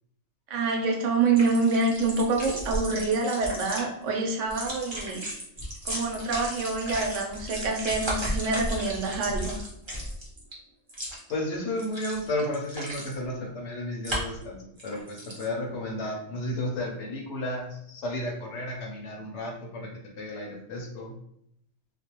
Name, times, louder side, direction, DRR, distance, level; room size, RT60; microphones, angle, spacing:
voice 1, 0.5-5.2 5.8-9.6, right 3 dB, 70° right, 1 dB, 0.9 m, -26 dB
sound 1, 1.3-3.8 4.4-10.5 10.9-11.3 11.8-13.2 14.0-14.4 14.8-15.4, equal, 30° right, 0.6 m, -34 dB
voice 2, 11.3-19.9 20.2-21.2, left 1 dB, 65° left, 0 dB, 0.9 m, -33 dB
2.5 x 2.2 x 2.9 m, 0.74 s
omnidirectional pair, 1.4 m